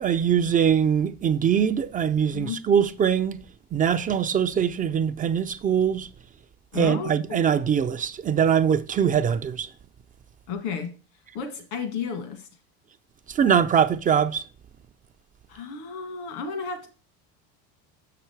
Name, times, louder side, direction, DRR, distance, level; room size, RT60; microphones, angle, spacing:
voice 1, 0.0-3.4 3.7-6.1 6.7-9.7 13.3-14.4, right 8 dB, 25° right, 0.4 m, -22 dB
voice 2, 2.3-2.6 6.7-7.4 10.5-10.9 11.3-12.5 15.5-16.9, left 6 dB, 75° left, 1.8 m, -32 dB
6.5 x 5.8 x 4.5 m
supercardioid pair, 100°, 33 cm